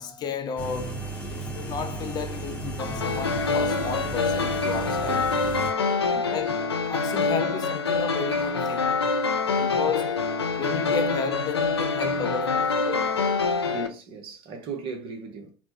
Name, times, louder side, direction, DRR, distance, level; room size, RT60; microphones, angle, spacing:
voice 1, 0.0-6.6 6.8-8.9 9.5-13.1, left 6 dB, 30° left, 0.5 m, -33 dB
sound 1, 0.6-5.7, right 3 dB, 10° left, 1.0 m, -35 dB
sound 2, 2.8-13.9, left 4 dB, 85° left, 0.5 m, -25 dB
voice 2, 6.1-6.5 13.6-15.5, right 4 dB, 45° right, 1.0 m, -37 dB
4.1 x 2.1 x 2.8 m
figure-of-eight pair, 85°, 13 cm